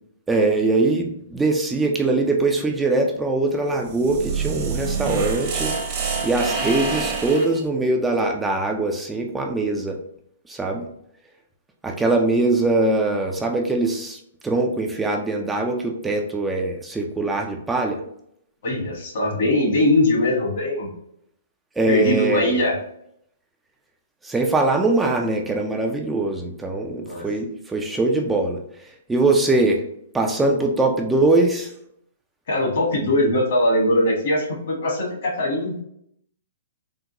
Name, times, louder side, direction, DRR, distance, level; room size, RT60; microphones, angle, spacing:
voice 1, 0.3-5.8 6.2-10.0 10.5-10.9 11.8-18.0 21.8-22.6 24.2-29.8 30.1-31.7, right 2 dB, 10° right, 1 dB, 0.3 m, -22 dB
sound 1, 3.7-7.6, right 5 dB, 35° right, 0.8 m, -27 dB
voice 2, 18.6-20.9 21.9-22.8 27.1-27.2 32.5-35.8, left 1 dB, 65° left, -1 dB, 1.4 m, -21 dB
3.7 x 2.2 x 2.8 m, 0.71 s
hypercardioid pair, 145°, 0 cm